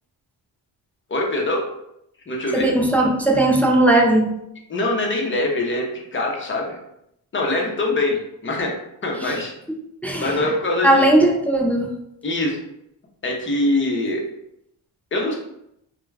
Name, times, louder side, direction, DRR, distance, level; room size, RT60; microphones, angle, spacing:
voice 1, 1.1-1.6 2.3-2.7 4.7-5.8 6.1-6.8 7.3-8.7 9.0-9.5 10.2-11.1 12.2-12.6 13.2-14.2 15.1-15.3, left 2 dB, 25° left, 0 dB, 0.7 m, -23 dB
voice 2, 2.5-4.3 9.2-9.3 10.0-10.4 10.8-11.9, right 1 dB, 5° left, 1 dB, 0.3 m, -17 dB
2.3 x 2.2 x 3.2 m, 0.79 s
cardioid pair, 80°, 45 cm